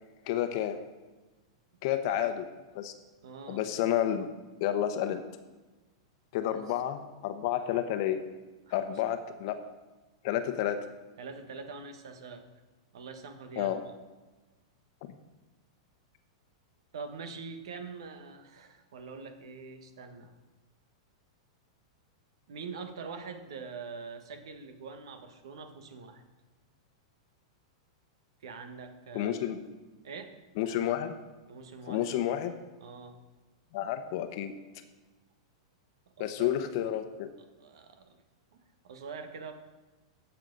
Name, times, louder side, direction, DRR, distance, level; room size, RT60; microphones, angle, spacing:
voice 1, 0.3-0.8 1.8-2.4 2.7-2.9 3.5-4.3 4.6-5.2 6.3-8.2 8.7-9.6 10.2-10.8 13.6-13.8 29.1-29.6 30.6-31.1 31.9-32.5 33.7-34.5 36.2-37.3, left 11 dB, 55° left, 9 dB, 1.0 m, -30 dB
voice 2, 3.2-3.6 6.5-6.6 8.7-9.1 11.2-12.4 12.9-13.7 16.9-20.3 22.5-26.2 28.4-29.3 30.0-30.4 31.5-32.3 32.8-33.1 36.2-36.5 37.6-38.2 38.5-39.5, right 5 dB, 75° right, 7 dB, 1.4 m, -44 dB
15.0 x 5.8 x 4.0 m, 1.2 s
hypercardioid pair, 115°, 3 cm